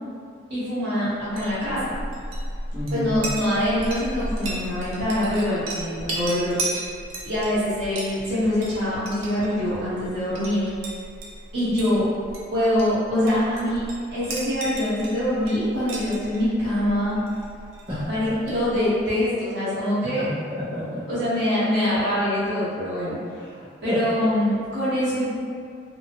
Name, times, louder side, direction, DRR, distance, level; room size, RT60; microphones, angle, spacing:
voice 1, 0.5-1.9 2.9-6.6 7.2-10.7 11.5-12.1 12.5-17.2 18.1-20.3 21.1-23.1 23.8-25.3, left 1 dB, 60° right, -12 dB, 1.2 m, -24 dB
Chink clink, 1.2-19.0, right 1 dB, 90° right, 0.6 m, -35 dB
voice 2, 2.7-3.1 17.9-18.4 20.0-21.0 23.4-24.0, equal, 30° right, -15 dB, 0.8 m, -31 dB
2.8 x 2.4 x 2.7 m, 2.3 s
head